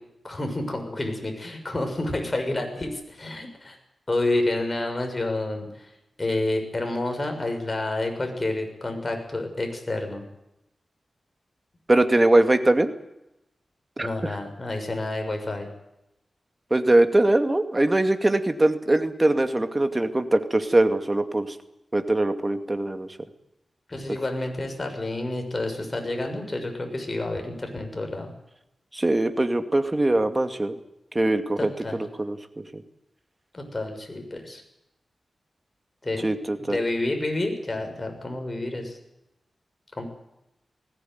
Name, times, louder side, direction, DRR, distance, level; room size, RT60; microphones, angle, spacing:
voice 1, 0.2-3.8 4.1-5.9 6.2-10.2 14.0-15.7 23.9-28.3 31.6-32.0 33.5-34.6 36.0-36.3 36.6-39.0 40.0-40.1, left 2 dB, 30° left, 4 dB, 6.7 m, -29 dB
voice 2, 11.9-12.9 14.0-14.1 16.7-21.5 21.9-23.1 28.9-30.7 31.1-32.4 32.7-32.8 36.2-36.8, right 1 dB, 25° right, 7 dB, 2.4 m, -22 dB
20.0 x 17.0 x 9.5 m, 0.88 s
wide cardioid pair, 80°, 0 cm